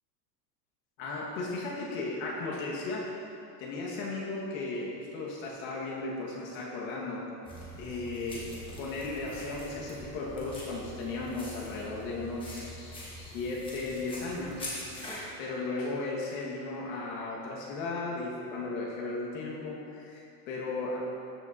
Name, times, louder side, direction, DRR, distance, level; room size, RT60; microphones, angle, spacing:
voice 1, 1.0-3.1 3.6-7.3 7.8-14.7 15.4-21.0, left 3 dB, 55° left, -4 dB, 1.7 m, -36 dB
sound 1, 7.4-15.2, equal, 10° left, 1.1 m, -44 dB
13.0 x 6.1 x 2.7 m, 2.6 s
supercardioid pair, 170°, 47 cm